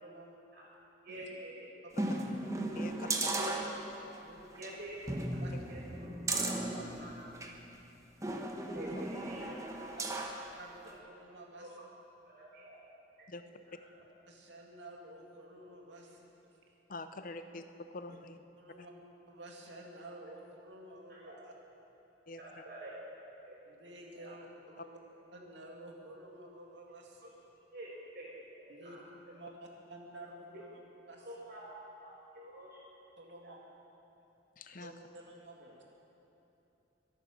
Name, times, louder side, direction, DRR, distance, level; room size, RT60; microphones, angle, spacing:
voice 1, 0.0-0.4 1.1-1.3 2.0-2.2 4.2-4.8 5.4-5.5 6.4-6.8 8.7-8.9 10.6-10.9 11.2-11.8 13.8-13.9 14.3-16.4 16.7-16.8 18.6-18.9 19.3-21.5 23.7-25.0 25.3-27.4 28.7-30.8 31.1-31.3 33.2-33.6 34.8-35.8, right 1 dB, 80° right, 0 dB, 2.5 m, -51 dB
voice 2, 1.0-1.7 3.3-3.6 4.6-5.0 5.3-5.4 5.7-6.5 6.8-7.2 8.7-10.2 11.5-11.7 12.2-12.7 13.2-13.3 13.9-14.0 17.1-17.2 21.1-21.3 22.4-23.6 24.1-24.2 27.7-29.0 30.5-30.6 31.2-31.7 32.0-32.8 33.4-33.5, right 1 dB, 60° right, -7 dB, 4.7 m, -48 dB
sound 1, 1.9-4.2 4.6-4.7 5.1-7.6 8.2-10.4 10.9-11.0, right 2 dB, 20° right, 1.2 m, -36 dB
voice 3, 2.7-3.5 8.9-9.0 13.3-13.4 16.9-17.6 17.9-18.4 22.3-22.6 34.6-34.9, left 2 dB, 50° left, 9 dB, 0.8 m, -45 dB
23.5 x 9.1 x 6.6 m, 2.9 s
head